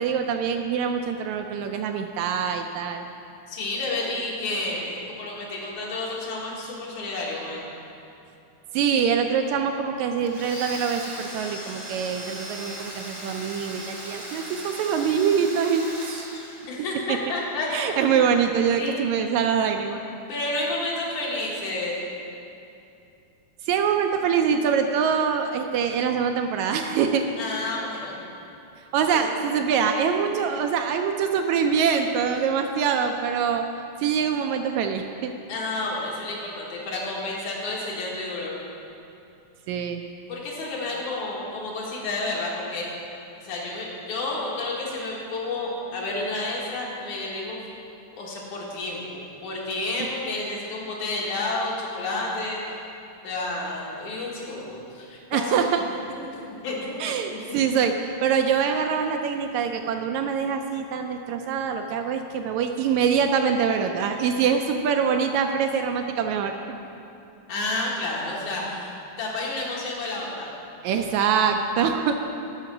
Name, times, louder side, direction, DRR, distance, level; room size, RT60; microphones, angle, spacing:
voice 1, 0.0-3.0 8.7-16.3 17.1-17.2 17.7-20.0 23.7-27.2 28.9-33.7 34.0-35.3 39.7-40.0 55.3-55.8 57.0-57.9 58.2-66.5 70.8-72.3, right 7 dB, 80° right, 5 dB, 1.8 m, -24 dB
voice 2, 3.5-7.7 16.7-18.3 18.8-19.0 20.3-21.9 27.4-28.2 29.1-29.2 35.5-38.6 40.3-42.9 43.4-47.6 48.1-52.8 53.2-55.6 56.1-56.3 56.6-57.8 67.5-70.5, left 2 dB, 70° left, -4 dB, 3.0 m, -30 dB
Domestic sounds home sounds, 10.3-17.1, equal, 25° right, 0.7 m, -38 dB
13.0 x 5.7 x 5.8 m, 2.7 s
omnidirectional pair, 3.5 m